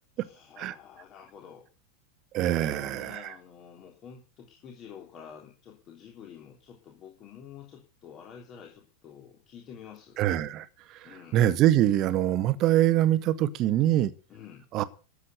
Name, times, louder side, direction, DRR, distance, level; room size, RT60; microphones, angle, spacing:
voice 1, 0.2-1.7 2.5-10.2 11.0-11.4 14.3-14.7, left 8 dB, 30° left, 3.4 m, -48 dB
voice 2, 2.3-3.3 10.2-11.1 11.3-14.1 14.7-14.8, right 13 dB, 35° right, 1.2 m, -24 dB
13.5 x 8.3 x 8.1 m
figure-of-eight pair, 90°, 0 cm